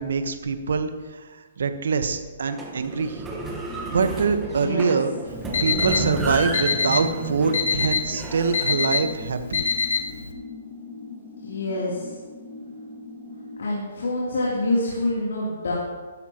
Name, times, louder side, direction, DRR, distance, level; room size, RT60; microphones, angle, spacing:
voice 1, 0.0-3.2 3.9-5.1 5.6-9.7, right 5 dB, 75° right, 8 dB, 1.2 m, -24 dB
sound 1, 2.4-8.7, right 2 dB, 10° right, 1.3 m, -32 dB
sound 2, 3.7-13.6, left 3 dB, 10° left, 1.7 m, -41 dB
voice 2, 4.4-4.8 11.4-12.1 13.6-15.7, left 2 dB, 85° left, -6 dB, 3.2 m, -26 dB
Alarm, 5.3-10.3, left 5 dB, 65° left, 1.4 m, -26 dB
14.5 x 12.5 x 3.0 m, 1.4 s
hypercardioid pair, 160°, 0 cm